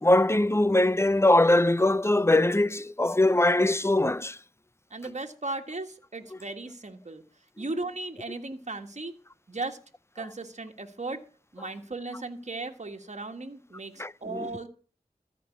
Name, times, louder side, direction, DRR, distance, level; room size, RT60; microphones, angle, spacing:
voice 1, 0.0-4.4 14.0-14.5, left 1 dB, 15° left, 0.6 m, -22 dB
voice 2, 4.9-7.2 7.6-9.1 9.5-9.8 10.1-11.2 11.5-14.7, right 2 dB, 50° right, 1.7 m, -36 dB
14.0 x 5.3 x 8.4 m
cardioid pair, 40°, 15 cm